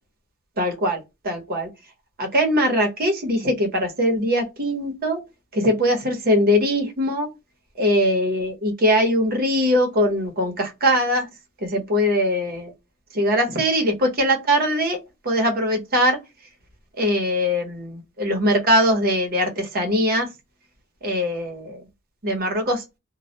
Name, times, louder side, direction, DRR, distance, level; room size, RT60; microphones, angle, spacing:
voice 1, 0.6-1.7 2.2-5.2 5.5-7.3 7.8-11.3 11.6-12.7 13.1-16.2 17.0-20.3 21.0-21.8 22.2-22.8, equal, 45° right, 0.8 m, -21 dB
2.2 x 2.1 x 2.7 m
head